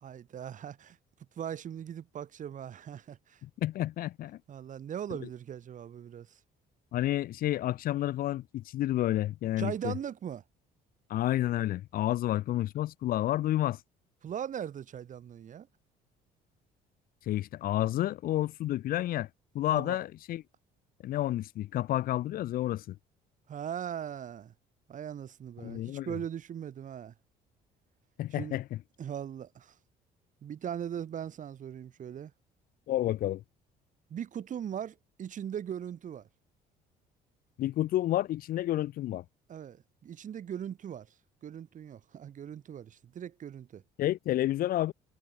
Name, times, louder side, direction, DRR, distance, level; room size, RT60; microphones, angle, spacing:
voice 1, 0.0-1.0 1.3-3.4 4.5-6.4 9.6-10.4 14.2-15.7 19.7-20.0 23.5-24.5 24.9-27.1 28.3-28.6 29.0-29.8 30.4-32.3 34.1-36.3 39.5-41.1 41.4-43.8, right 9 dB, 50° right, 2.9 m, -39 dB
voice 2, 3.6-4.4 5.2-5.3 6.9-9.9 11.1-13.8 17.3-19.3 19.5-20.4 21.0-23.0 25.6-26.1 28.2-28.6 32.9-33.4 37.6-39.2 44.0-44.9, left 14 dB, 60° left, 0.5 m, -30 dB
cardioid pair, 110°, 17 cm